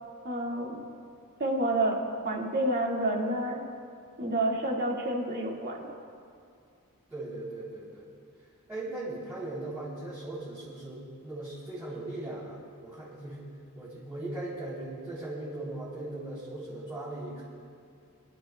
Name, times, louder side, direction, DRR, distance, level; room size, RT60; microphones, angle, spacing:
voice 1, 0.2-0.8 1.4-3.6 4.2-6.0, right 1 dB, 45° right, -2 dB, 2.1 m, -29 dB
voice 2, 7.1-8.1 8.7-13.4 13.7-17.4, right 2 dB, 10° right, -11 dB, 3.7 m, -38 dB
28.5 x 12.0 x 2.3 m, 2.4 s
head